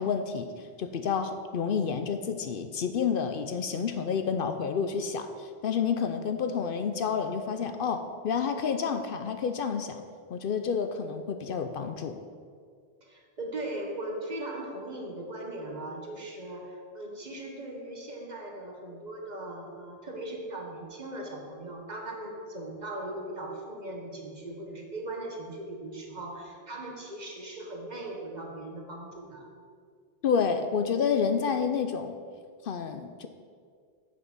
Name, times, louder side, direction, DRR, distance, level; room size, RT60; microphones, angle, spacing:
voice 1, 0.0-10.0 10.3-12.2 30.2-32.2 32.6-33.3, left 6 dB, 65° left, 8 dB, 0.7 m, -29 dB
voice 2, 13.0-29.5, right 1 dB, 45° right, 1 dB, 1.4 m, -39 dB
7.9 x 6.5 x 6.0 m, 2.1 s
omnidirectional pair, 1.0 m